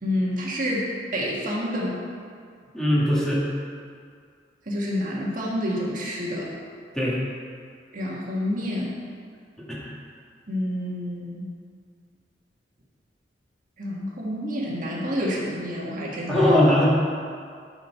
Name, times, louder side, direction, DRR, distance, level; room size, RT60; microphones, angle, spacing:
voice 1, 0.0-0.8 1.1-2.0 4.6-6.5 7.9-8.9 10.5-11.5 13.8-16.6, equal, 50° right, -4 dB, 1.5 m, -28 dB
voice 2, 2.7-3.4 6.9-7.2 9.7-9.9 16.3-16.9, left 1 dB, 5° left, -8 dB, 1.9 m, -20 dB
11.5 x 4.5 x 5.6 m, 2.2 s
head